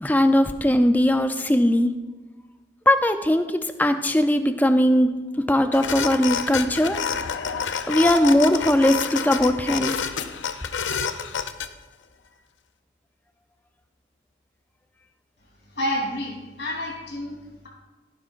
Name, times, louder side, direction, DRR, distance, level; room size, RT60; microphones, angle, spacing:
voice 1, 0.0-1.9 2.9-7.0 7.9-10.0, left 1 dB, 10° left, 8 dB, 0.5 m, -20 dB
sound 1, 5.7-11.7, left 6 dB, 85° left, 0.6 m, -28 dB
voice 2, 15.7-17.7, equal, 70° left, -2 dB, 3.4 m, -29 dB
16.0 x 9.6 x 2.5 m, 1.2 s
head